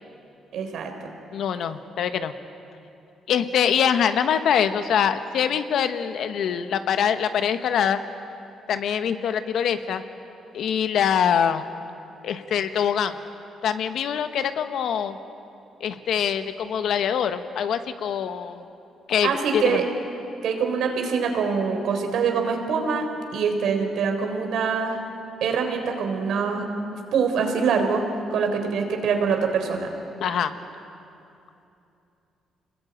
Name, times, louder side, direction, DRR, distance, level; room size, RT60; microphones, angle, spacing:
voice 1, 0.5-0.9 19.2-19.8 20.4-23.1 23.3-25.0 25.4-26.7 27.1-28.0 28.3-29.9, right 5 dB, 75° right, 4 dB, 3.7 m, -24 dB
voice 2, 1.3-2.3 3.3-8.0 8.7-10.0 10.5-11.6 12.2-13.2 13.6-15.2 15.8-18.6 19.1-19.8 30.2-30.5, left 8 dB, 70° left, 9 dB, 1.2 m, -24 dB
26.0 x 21.0 x 9.0 m, 2.8 s
cardioid pair, 90°, 0 cm